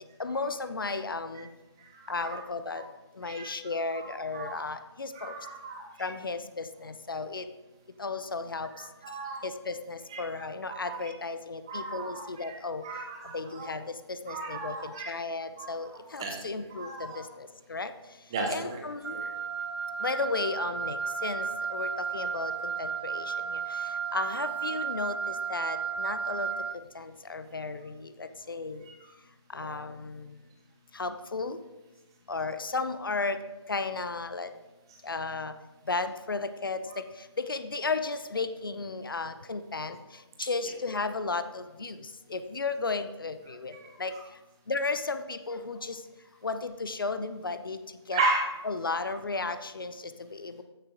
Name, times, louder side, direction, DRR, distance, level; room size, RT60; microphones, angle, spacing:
voice 1, 0.2-1.5 2.1-2.8 3.2-5.3 6.0-7.4 8.0-8.7 9.4-12.8 13.3-13.8 14.2-17.1 17.4-17.9 18.5-19.1 20.0-23.3 24.1-26.5 27.0-28.8 29.5-30.2 31.0-31.6 32.3-33.4 33.7-34.5 35.0-35.5 35.9-36.8 37.4-40.0 40.4-41.9 42.3-43.7 44.0-44.1 44.7-46.0 46.4-47.8 48.1-48.2 48.6-49.9 50.4-50.6, left 3 dB, 50° left, 10 dB, 0.7 m, -34 dB
voice 2, 1.8-2.4 2.7-2.8 3.2-4.6 5.1-6.2 8.7-9.4 10.1-11.1 11.7-13.7 14.3-15.1 15.6-15.7 16.2-17.3 18.3-18.8 19.1-19.3 23.7-23.9 26.2-26.3 28.8-29.1 29.6-29.7 34.9-35.0 36.9-37.0 40.6-40.7 43.5-44.2 48.1-48.5, right 3 dB, 10° right, 1 dB, 0.6 m, -36 dB
Wind instrument woodwind instrument, 19.0-26.8, right 6 dB, 60° right, 0.5 m, -33 dB
15.0 x 6.6 x 3.8 m, 1.1 s
figure-of-eight pair, 160°, 15 cm